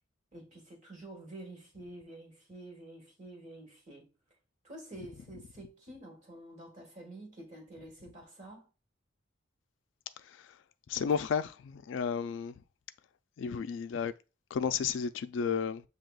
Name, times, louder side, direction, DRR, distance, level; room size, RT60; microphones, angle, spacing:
voice 1, 0.3-4.1 4.6-8.7, right 1 dB, 40° right, 1.6 m, -49 dB
voice 2, 10.2-10.5 10.9-12.5 13.4-14.1 14.5-15.8, left 7 dB, 70° left, 0.3 m, -32 dB
7.4 x 2.8 x 2.3 m
head